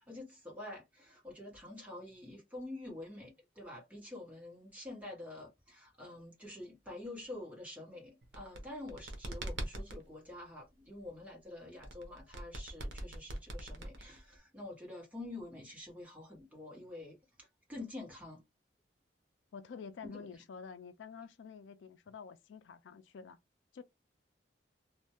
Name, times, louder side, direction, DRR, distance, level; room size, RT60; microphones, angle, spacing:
voice 1, 0.1-18.4 20.0-20.2, left 2 dB, 10° right, 1.0 m, -47 dB
sound 1, 8.2-10.0 11.8-14.4, right 1 dB, 75° right, 0.7 m, -41 dB
voice 2, 19.5-23.4 23.7-23.8, left 6 dB, 90° left, 0.4 m, -49 dB
2.2 x 2.1 x 2.8 m
head